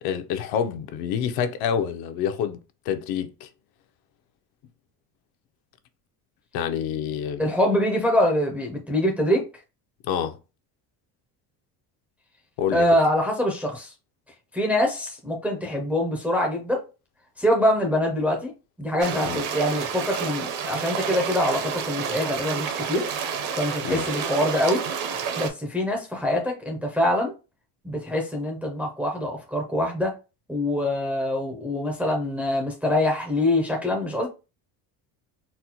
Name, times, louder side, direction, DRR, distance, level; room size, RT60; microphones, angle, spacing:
voice 1, 0.0-2.6 2.9-3.5 6.5-7.5 10.1-10.4 12.6-12.9 19.2-19.4 23.8-24.1, left 8 dB, 65° left, 0.5 m, -27 dB
voice 2, 7.4-9.5 12.7-13.9 14.5-16.8 17.4-18.5 18.8-23.1 23.6-24.8 25.4-27.3 27.8-30.1 30.5-34.3, left 1 dB, 5° right, 0.4 m, -24 dB
sound 1, 19.0-25.5, right 7 dB, 50° right, 0.6 m, -29 dB
4.2 x 2.1 x 2.7 m
cardioid pair, 170°, 40 cm